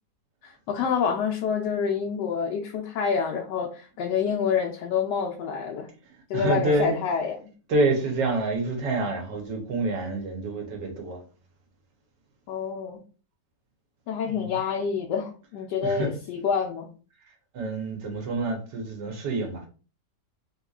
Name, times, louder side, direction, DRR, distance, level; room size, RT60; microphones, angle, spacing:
voice 1, 0.4-5.9 6.3-7.5 12.5-13.0 14.1-16.9, left 6 dB, 85° left, 1.2 m, -27 dB
voice 2, 6.3-7.0 7.7-11.2 14.2-14.5 15.8-16.1 17.5-19.6, right 2 dB, 90° right, 1.7 m, -27 dB
3.6 x 2.9 x 2.4 m
omnidirectional pair, 1.8 m